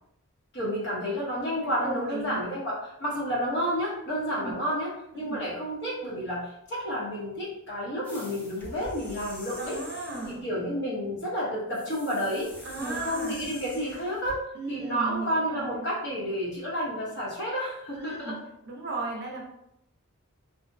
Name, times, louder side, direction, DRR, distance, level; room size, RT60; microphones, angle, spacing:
voice 1, 0.5-9.8 10.2-12.5 12.8-18.4, equal, 50° left, -4 dB, 0.8 m, -30 dB
voice 2, 1.6-2.5 4.4-4.6 5.1-5.4 9.6-10.4 12.6-13.5 14.5-15.9 17.9-18.4 18.7-19.4, right 3 dB, 50° right, 0 dB, 0.5 m, -36 dB
sound 1, 8.0-10.5 11.7-14.4, left 1 dB, 10° left, 0.4 m, -45 dB
2.5 x 2.0 x 2.5 m, 0.79 s
head